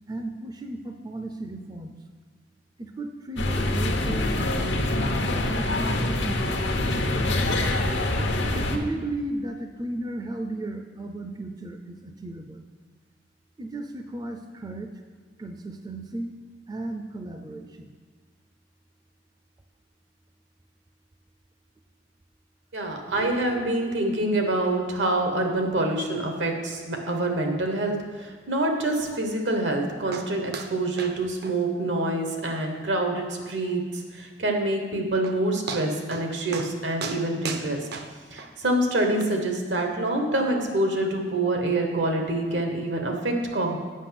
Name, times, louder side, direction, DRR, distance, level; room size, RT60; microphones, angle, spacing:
voice 1, 0.1-2.0 2.8-4.3 4.6-4.7 5.2-6.4 6.8-7.4 8.5-12.7 13.6-14.9 15.4-16.3 16.7-17.9, right 2 dB, 20° right, 5 dB, 0.4 m, -35 dB
sound 1, 3.4-8.8, left 1 dB, 85° left, 0.9 m, -25 dB
voice 2, 22.7-37.9 38.3-43.8, right 2 dB, 85° right, 3 dB, 1.3 m, -26 dB
sound 2, 30.1-30.3 30.5-30.7 31.0-31.2 31.4-31.5 32.0-32.1 32.5-32.6 33.0-33.1 34.8-34.9 35.2-35.4 35.7-36.3 36.5-36.7 37.0-38.5 39.2-39.3, right 5 dB, 60° right, 0.6 m, -35 dB
8.2 x 5.8 x 5.9 m, 1.5 s
head